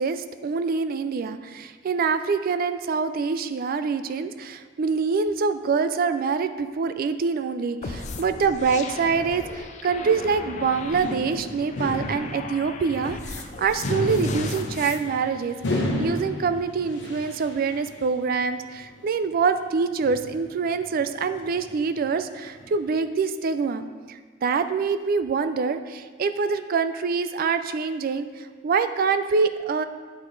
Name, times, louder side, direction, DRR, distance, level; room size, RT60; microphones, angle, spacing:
voice 1, 0.0-29.8, right 5 dB, 50° right, 11 dB, 0.3 m, -25 dB
sound 1, 7.8-15.0, left 4 dB, 40° left, 0.4 m, -38 dB
sound 2, 10.6-18.4 18.8-19.1 20.0-23.0, left 1 dB, 65° left, 0.9 m, -32 dB
8.3 x 4.1 x 3.9 m, 1.5 s
head